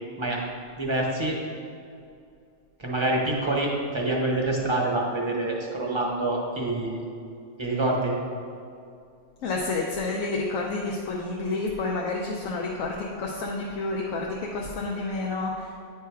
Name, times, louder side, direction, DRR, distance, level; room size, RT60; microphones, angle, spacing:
voice 1, 0.8-1.4 2.8-7.0 7.6-8.1, right 2 dB, 25° right, -2 dB, 0.8 m, -26 dB
voice 2, 9.4-15.7, left 3 dB, 90° left, -1 dB, 1.1 m, -29 dB
9.2 x 3.4 x 4.6 m, 2.5 s
omnidirectional pair, 1.4 m